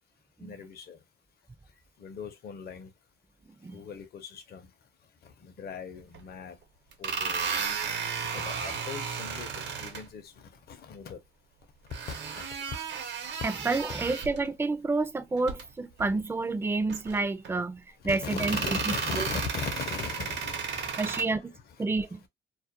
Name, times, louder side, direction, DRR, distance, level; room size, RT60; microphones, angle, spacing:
voice 1, 0.4-1.0 2.0-2.9 3.7-4.7 5.2-6.6 7.0-7.4 8.2-11.2 12.1-12.5 18.0-21.4, left 6 dB, 50° left, 0.6 m, -39 dB
sound 1, 6.1-6.2 6.9-10.0 11.9-14.5 15.4-15.6 16.0-16.1 16.9-17.5 18.3-21.2, right 6 dB, 65° right, 0.7 m, -34 dB
voice 2, 13.4-19.3 21.0-21.5 21.8-22.2, right 3 dB, 10° right, 0.4 m, -29 dB
2.4 x 2.1 x 2.7 m
cardioid pair, 90°, 20 cm